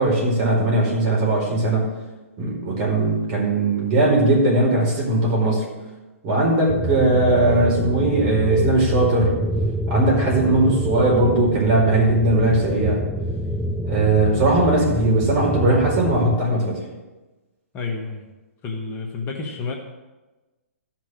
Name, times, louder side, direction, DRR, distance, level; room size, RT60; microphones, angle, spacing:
voice 1, 0.0-1.9 2.4-5.6 6.2-9.4 9.9-13.0 13.8-16.8, right 2 dB, 40° right, -2 dB, 4.8 m, -19 dB
sound 1, 6.7-16.4, equal, ahead, 0.4 m, -27 dB
voice 2, 17.7-18.3 18.6-19.7, left 4 dB, 25° left, 1 dB, 1.5 m, -30 dB
14.5 x 6.0 x 6.4 m, 1.1 s
hypercardioid pair, 125°, 8 cm